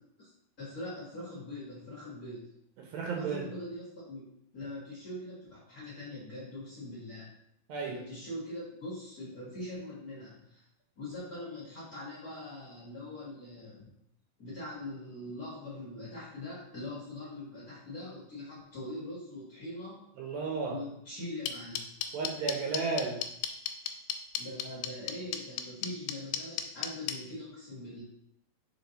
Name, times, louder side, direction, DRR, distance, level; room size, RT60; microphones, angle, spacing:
voice 1, 0.6-2.5 3.2-4.2 4.5-7.3 7.8-10.6 11.0-13.9 14.4-20.0 20.7-22.0 24.3-28.0, left 1 dB, 60° left, -7 dB, 0.9 m, -42 dB
voice 2, 2.8-3.4 7.7-8.0 20.2-20.8 22.1-23.2, right 4 dB, 80° right, 0 dB, 2.5 m, -33 dB
sound 1, 21.5-27.1, left 10 dB, 80° left, 2.2 m, -32 dB
5.0 x 4.8 x 3.9 m, 0.74 s
omnidirectional pair, 4.3 m